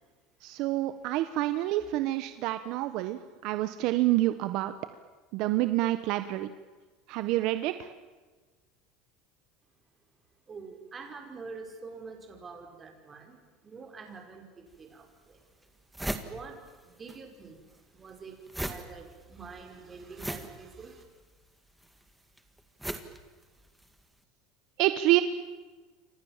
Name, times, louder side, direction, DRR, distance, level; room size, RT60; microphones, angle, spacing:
voice 1, 0.4-4.7 5.3-6.5 7.1-7.9 24.8-25.2, right 16 dB, 55° right, 10 dB, 1.2 m, -27 dB
voice 2, 10.5-15.4 16.2-16.6 16.8-17.6 17.9-21.0, right 4 dB, 20° right, 3 dB, 5.3 m, -46 dB
sound 1, 14.7-14.8 15.3-15.4 15.6-17.2 17.4-24.0, right 1 dB, 5° right, 2.0 m, -39 dB
29.5 x 26.0 x 7.4 m, 1.3 s
cardioid pair, 150°, 0 cm